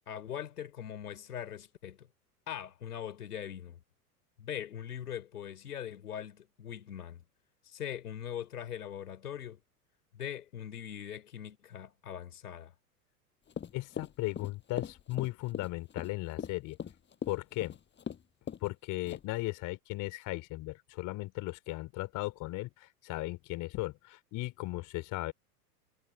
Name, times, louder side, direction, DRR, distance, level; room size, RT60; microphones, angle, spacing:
voice 1, 0.1-2.1 2.5-3.8 4.4-7.2 7.6-9.6 10.1-12.7, left 9 dB, 70° left, 4.1 m, -41 dB
Run, 13.5-18.2 18.5-18.7 19.1-19.4, left 7 dB, 25° left, 6.9 m, -40 dB
voice 2, 13.7-16.8 17.3-17.7 18.6-25.3, left 19 dB, 40° left, 3.4 m, -36 dB
figure-of-eight pair, 90°, 46 cm